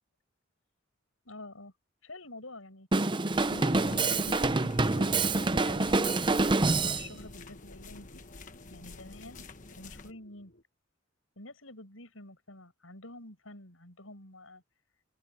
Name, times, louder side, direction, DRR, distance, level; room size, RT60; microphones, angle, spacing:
voice 1, 1.2-1.7 2.0-5.2 5.5-6.3 6.7-8.2 8.7-9.5 9.8-10.5 11.4-14.6, left 2 dB, 80° left, 7.9 m, -48 dB
Drum kit, 2.9-7.1, right 3 dB, 25° right, 0.7 m, -26 dB
sound 1, 3.3-10.1, left 3 dB, 40° left, 1.2 m, -49 dB
sound 2, 3.5-10.6, left 1 dB, 55° left, 3.1 m, -51 dB
open air
head